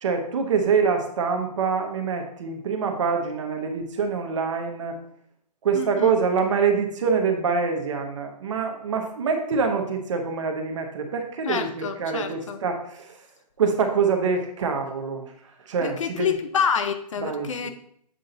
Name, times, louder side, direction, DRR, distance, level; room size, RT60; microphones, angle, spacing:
voice 1, 0.0-5.0 5.6-13.2 13.6-15.3 15.6-16.4 17.2-17.7, right 5 dB, 45° right, 4 dB, 1.1 m, -25 dB
voice 2, 5.7-6.2 11.4-12.6 15.8-17.7, left 7 dB, 50° left, 8 dB, 0.6 m, -27 dB
7.7 x 3.8 x 3.9 m, 0.67 s
figure-of-eight pair, 125°, 21 cm